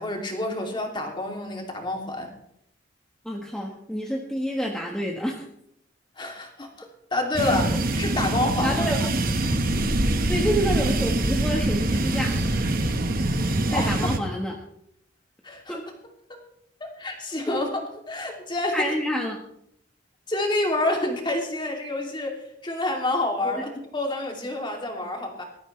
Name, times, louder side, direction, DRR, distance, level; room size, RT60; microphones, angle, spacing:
voice 1, 0.0-2.3 6.2-6.9 7.1-7.7 8.0-8.8 13.7-13.9 15.4-15.8 16.3-16.4 16.8-17.7 18.1-18.9 20.3-25.4, left 2 dB, 25° left, 1 dB, 2.8 m, -28 dB
voice 2, 3.2-5.4 8.6-9.1 10.3-12.4 13.7-14.5 15.7-15.8 17.5-17.6 18.7-19.4 23.4-23.6, equal, 5° left, -1 dB, 1.4 m, -28 dB
sound 1, 7.3-14.2, right 1 dB, 50° right, 1.3 m, -24 dB
20.0 x 13.5 x 3.3 m, 0.74 s
head